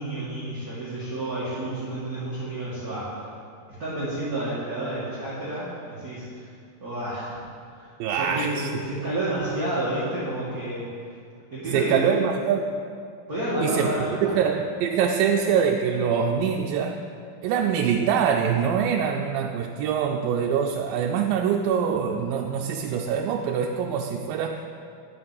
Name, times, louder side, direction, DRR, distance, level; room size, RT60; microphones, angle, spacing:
voice 1, 0.0-3.2 3.8-6.4 6.8-7.4 7.7-10.9 11.5-12.2 13.3-14.3, right 1 dB, 35° right, -11 dB, 1.8 m, -30 dB
voice 2, 8.0-8.7 11.7-12.7 13.6-17.0 17.4-24.6, right 7 dB, 85° right, 2 dB, 2.3 m, -24 dB
9.5 x 5.9 x 7.2 m, 2.3 s
omnidirectional pair, 4.1 m